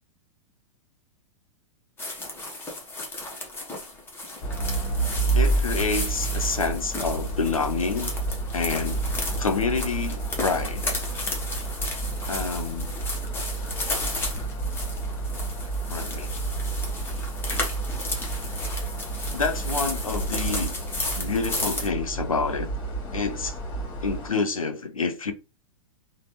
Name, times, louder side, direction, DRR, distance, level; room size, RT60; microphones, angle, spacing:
sound 1, 2.0-21.9, left 2 dB, 10° left, 0.9 m, -34 dB
sound 2, 4.4-24.3, right 3 dB, 30° left, 1.3 m, -30 dB
voice 1, 5.3-8.1 8.5-9.0 9.4-11.0 12.3-12.9 15.9-16.3 19.3-20.7 21.1-22.7 23.1-23.6 24.0-25.3, left 4 dB, 85° left, 0.7 m, -28 dB
3.3 x 2.3 x 2.9 m
figure-of-eight pair, 100°, 17 cm